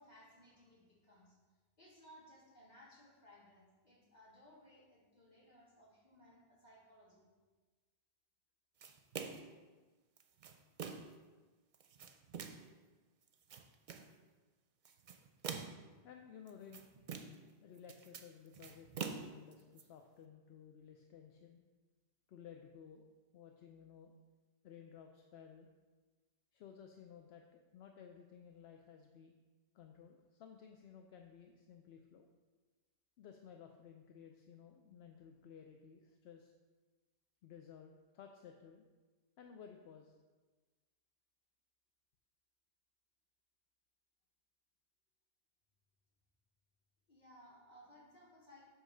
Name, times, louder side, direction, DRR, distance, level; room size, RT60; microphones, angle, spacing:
voice 1, 0.0-1.4 1.8-7.3 47.1-48.7, equal, 45° left, -7 dB, 2.7 m, -62 dB
sound 1, 8.8-9.6 10.2-11.2 11.7-12.7 13.3-14.1 14.9-15.9 16.5-17.5 17.8-19.8, right 6 dB, 55° right, 0.6 m, -46 dB
voice 2, 16.0-16.8 17.6-21.6 22.3-23.1 23.3-24.1 24.6-25.7 26.5-29.3 29.7-32.3 33.2-36.5 37.4-38.8 39.4-40.2, left 7 dB, 80° left, 4 dB, 0.8 m, -56 dB
8.0 x 3.2 x 6.4 m, 1.3 s
omnidirectional pair, 1.1 m